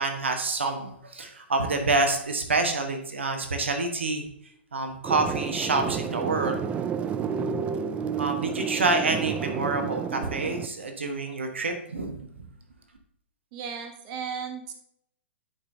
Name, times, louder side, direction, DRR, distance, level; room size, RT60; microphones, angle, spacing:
voice 1, 0.0-4.3 4.7-6.6 8.2-12.3, right 3 dB, 75° right, 5 dB, 1.2 m, -27 dB
sound 1, 5.0-10.7, right 7 dB, 20° right, 0.4 m, -30 dB
voice 2, 13.5-14.7, right 6 dB, 40° right, 5 dB, 1.1 m, -35 dB
10.5 x 5.4 x 2.7 m, 0.75 s
figure-of-eight pair, 115°, 6 cm